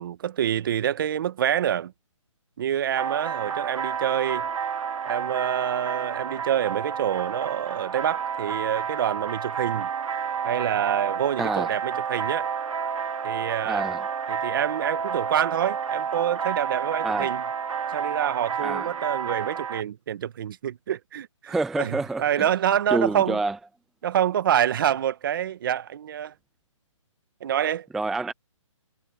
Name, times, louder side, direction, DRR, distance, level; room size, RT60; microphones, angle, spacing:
voice 1, 0.0-1.9 2.6-4.5 5.0-9.9 10.4-12.5 13.2-13.8 14.3-17.4 17.9-23.4 24.0-26.3 27.4-27.9, right 10 dB, 40° right, 1.6 m, -27 dB
sound 1, 3.0-19.8, right 7 dB, 80° right, 1.9 m, -30 dB
voice 2, 11.4-11.7 13.6-14.1 17.0-17.3 18.6-18.9 21.5-22.5 22.9-23.6 27.9-28.3, right 3 dB, ahead, 0.4 m, -27 dB
hypercardioid pair, 160°, 17 cm